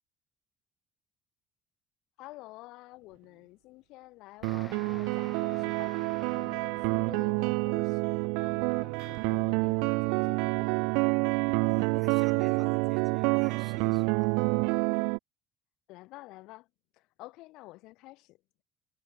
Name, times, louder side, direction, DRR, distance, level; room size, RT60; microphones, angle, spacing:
voice 1, 2.2-6.0 6.3-8.1 8.4-10.8 15.9-16.7 16.9-18.4, left 20 dB, 70° left, 4.9 m, -50 dB
sound 1, 4.4-7.5 8.7-9.5, left 4 dB, 30° left, 5.9 m, -52 dB
sound 2, 4.4-15.2, right 35 dB, 80° right, 0.6 m, -28 dB
voice 2, 11.6-14.4, right 5 dB, 35° right, 6.0 m, -50 dB
hypercardioid pair, 70°, 0 cm